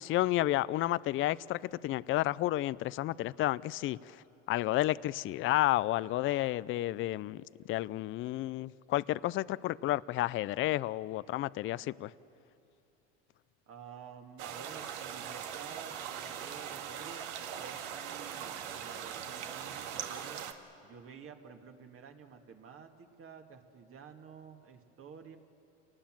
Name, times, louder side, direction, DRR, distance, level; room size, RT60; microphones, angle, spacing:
voice 1, 0.0-4.2 4.5-12.1, left 16 dB, 40° left, 0.5 m, -31 dB
voice 2, 13.7-20.4 20.8-25.4, right 6 dB, 40° right, 2.1 m, -51 dB
sound 1, 14.4-20.5, right 9 dB, 75° right, 1.8 m, -41 dB
28.5 x 19.0 x 7.6 m
supercardioid pair, 105°, 34 cm